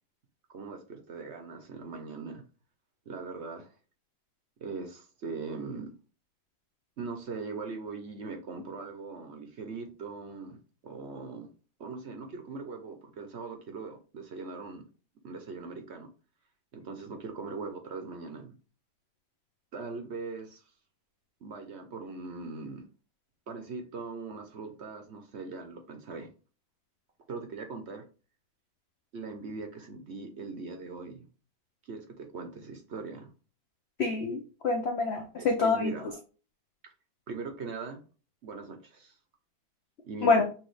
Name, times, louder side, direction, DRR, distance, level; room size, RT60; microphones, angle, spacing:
voice 1, 0.5-2.4 3.1-3.7 4.6-5.9 7.0-10.6 10.8-11.5 11.8-14.8 15.2-16.1 16.7-18.5 19.7-20.6 21.4-22.8 23.5-26.3 27.3-28.0 29.1-31.3 31.9-33.3 35.4-36.1 36.8-36.9 37.3-38.0 38.4-39.2 40.0-40.4, right 4 dB, 55° right, 0.8 m, -40 dB
voice 2, 34.0-35.9 40.2-40.4, left 4 dB, 80° left, 0.5 m, -26 dB
6.1 x 2.6 x 3.2 m
omnidirectional pair, 1.9 m